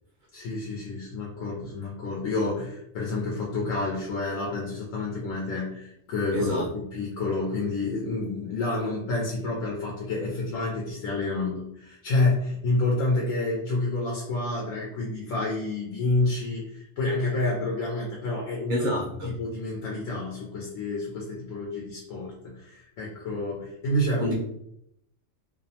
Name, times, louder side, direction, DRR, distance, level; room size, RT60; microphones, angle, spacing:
voice 1, 0.3-18.9 19.2-24.2, left 2 dB, 85° left, -3 dB, 1.0 m, -29 dB
voice 2, 6.3-6.7 18.7-19.3 24.2-24.3, equal, 60° right, -3 dB, 0.5 m, -27 dB
2.6 x 2.0 x 2.7 m, 0.76 s
omnidirectional pair, 1.3 m